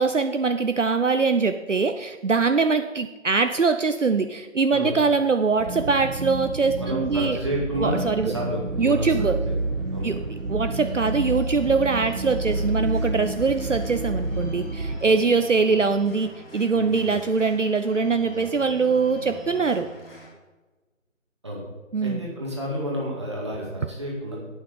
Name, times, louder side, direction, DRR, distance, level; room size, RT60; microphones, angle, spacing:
voice 1, 0.0-7.4 7.8-8.3 8.8-9.4 10.0-10.2 10.5-19.9 21.9-22.2, right 4 dB, 65° right, 8 dB, 0.7 m, -23 dB
sound 1, 5.6-15.0, right 2 dB, 90° right, 1.1 m, -29 dB
voice 2, 6.8-9.2 9.4-9.5 9.9-10.1 16.7-17.2 21.4-21.6 22.0-24.4, equal, 20° right, -4 dB, 2.0 m, -30 dB
Organ, 7.6-20.3, left 1 dB, 45° left, 3.8 m, -45 dB
11.0 x 8.9 x 5.0 m, 1.2 s
figure-of-eight pair, 165°, 40 cm